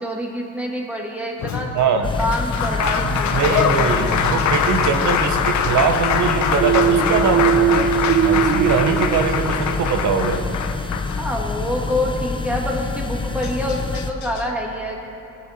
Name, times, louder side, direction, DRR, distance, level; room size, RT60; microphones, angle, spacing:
voice 1, 0.0-1.7 2.2-3.9 11.2-15.1, left 1 dB, 5° right, -2 dB, 2.5 m, -26 dB
Applause, 1.4-11.7 13.0-13.1 13.4-14.4, left 7 dB, 70° left, 0.9 m, -24 dB
voice 2, 1.7-2.1 3.0-7.9 8.2-10.4, right 5 dB, 75° right, 5 dB, 1.4 m, -22 dB
sound 1, 2.0-14.1, left 4 dB, 15° left, 0.8 m, -27 dB
sound 2, 6.6-10.2, right 8 dB, 45° right, 0.5 m, -20 dB
19.5 x 9.3 x 4.5 m, 2.9 s
cardioid pair, 90°, 30 cm